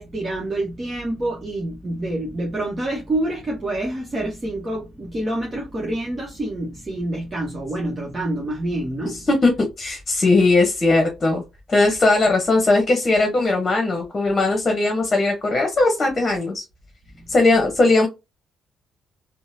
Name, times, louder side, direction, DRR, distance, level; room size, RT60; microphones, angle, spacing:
voice 1, 0.0-9.2, right 1 dB, 30° right, 1.0 m, -27 dB
voice 2, 9.1-11.4 11.7-16.6 17.3-18.1, left 2 dB, 35° left, 0.9 m, -19 dB
3.6 x 2.1 x 2.6 m
cardioid pair, 90°, 0 cm